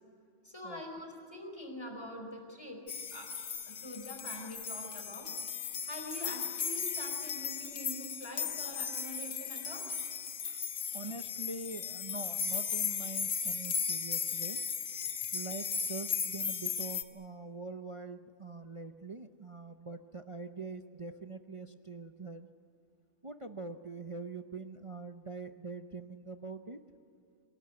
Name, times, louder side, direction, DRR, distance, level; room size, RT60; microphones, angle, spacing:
voice 1, 0.4-2.8 3.1-3.3 3.6-5.3 5.8-9.9, left 1 dB, 20° left, 3 dB, 4.7 m, -45 dB
sound 1, 2.9-17.0, left 6 dB, 80° left, 1.6 m, -36 dB
voice 2, 10.9-14.6 15.3-22.5 23.2-26.8, right 3 dB, 30° right, 7 dB, 0.6 m, -44 dB
26.0 x 18.0 x 9.6 m, 2.5 s
omnidirectional pair, 1.5 m